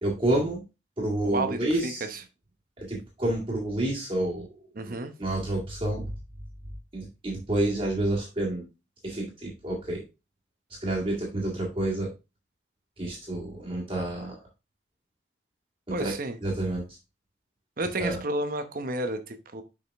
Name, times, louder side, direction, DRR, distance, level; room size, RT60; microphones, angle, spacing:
voice 1, 0.0-0.6 1.0-2.1 2.8-4.5 4.9-6.0 6.9-8.7 9.0-10.0 10.8-12.1 13.0-14.4 15.9-16.1 16.4-16.8 18.0-18.2, right 1 dB, 30° right, 2.0 m, -29 dB
voice 2, 1.2-2.2 4.8-5.1 15.9-16.4 17.8-19.6, right 2 dB, 50° right, 0.9 m, -31 dB
6.7 x 5.2 x 3.5 m
head